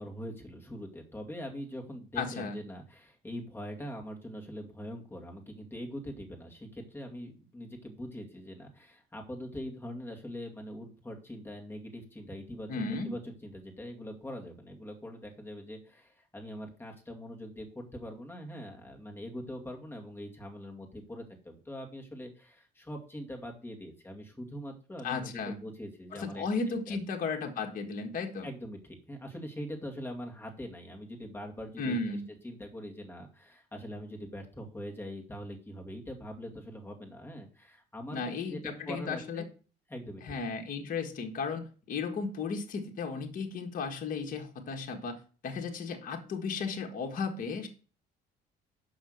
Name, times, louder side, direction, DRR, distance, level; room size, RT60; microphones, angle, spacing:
voice 1, 0.0-12.7 13.0-27.0 28.4-32.2 32.4-38.2 38.5-39.5 39.9-40.4, equal, 15° left, 1 dB, 2.3 m, -43 dB
voice 2, 2.1-2.6 12.7-13.1 25.0-25.6 26.1-28.5 31.8-32.3 38.1-39.4 40.2-47.7, left 4 dB, 55° left, 3 dB, 1.5 m, -35 dB
6.2 x 5.8 x 6.5 m, 0.38 s
cardioid pair, 110°, 17 cm